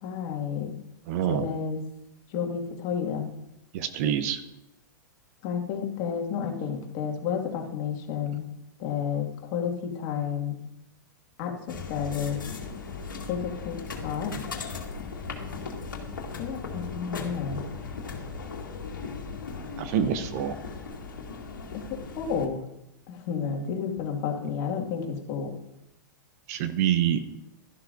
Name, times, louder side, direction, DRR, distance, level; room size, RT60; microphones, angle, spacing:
voice 1, 0.0-0.8 1.3-1.8 2.3-3.3 5.4-8.5 8.8-10.6 11.4-12.4 13.3-14.8 16.4-17.6 21.7-22.6 23.1-25.5, left 7 dB, 45° left, 2 dB, 2.1 m, -31 dB
voice 2, 1.1-1.4 3.7-4.4 19.8-20.5 26.5-27.2, right 10 dB, 50° right, 10 dB, 0.9 m, -26 dB
sound 1, 11.7-22.5, left 4 dB, 85° left, 1.9 m, -37 dB
12.5 x 11.5 x 2.7 m, 0.86 s
hypercardioid pair, 110°, 11 cm